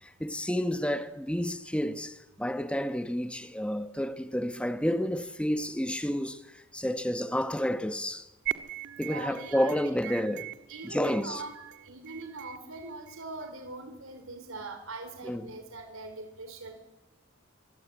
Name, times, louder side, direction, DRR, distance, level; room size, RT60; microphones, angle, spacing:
voice 1, 0.0-8.3 9.0-10.5 10.8-11.4 15.2-15.5, equal, 5° left, 1.2 m, -30 dB
sound 1, 8.5-13.5, right 14 dB, 60° right, 1.5 m, -40 dB
voice 2, 9.0-9.9 10.7-11.5 11.9-16.8, right 3 dB, 85° right, 3.9 m, -41 dB
25.5 x 24.0 x 8.5 m
head